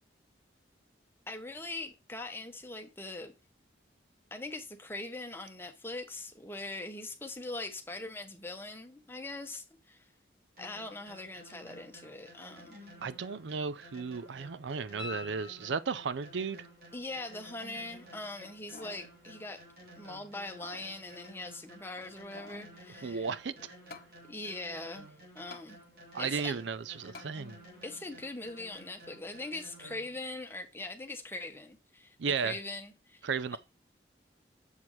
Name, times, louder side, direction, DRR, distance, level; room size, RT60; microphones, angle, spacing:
voice 1, 1.3-3.3 4.3-10.1 10.6-12.8 16.9-19.6 20.0-23.3 24.3-25.1 25.3-25.8 26.2-26.6 27.8-33.6, left 2 dB, 15° left, 1.0 m, -42 dB
sound 1, 10.6-30.2, right 1 dB, 55° right, 3.3 m, -54 dB
voice 2, 13.0-16.7 23.0-23.7 26.1-27.6 32.2-32.5 33.2-33.6, right 5 dB, 85° right, 0.5 m, -34 dB
sound 2, 15.0-16.3 19.1-19.2, left 5 dB, 5° right, 2.2 m, -46 dB
sound 3, 18.4-19.1 19.5-19.6 20.4-20.9 21.9-22.7 23.9-24.1 25.5-25.7 27.1-27.3 27.9-28.0, left 3 dB, 55° left, 0.9 m, -50 dB
7.3 x 6.1 x 3.1 m
head